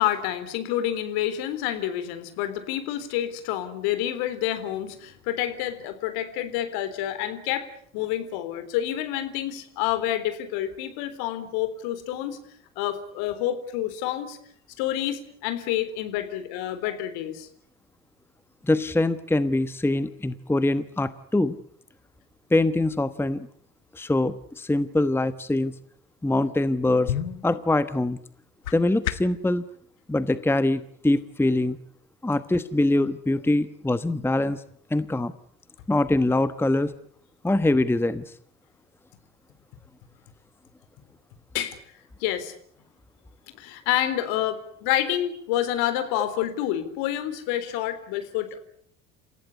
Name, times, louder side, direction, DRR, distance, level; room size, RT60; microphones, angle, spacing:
voice 1, 0.0-12.4 12.8-14.4 14.8-17.5 41.5-41.8 42.2-42.5 43.6-48.6, left 12 dB, 65° left, 11 dB, 3.8 m, -28 dB
voice 2, 18.6-21.6 22.5-23.5 23.9-25.7 26.2-27.1 27.4-28.2 28.7-29.6 30.1-31.8 32.2-34.6 34.9-35.3 35.9-36.9 37.4-38.2, left 2 dB, 5° left, 14 dB, 1.2 m, -23 dB
sound 1, 27.0-29.5, left 10 dB, 80° left, 1.5 m, -34 dB
28.5 x 16.0 x 9.6 m, 0.64 s
hypercardioid pair, 70°, 41 cm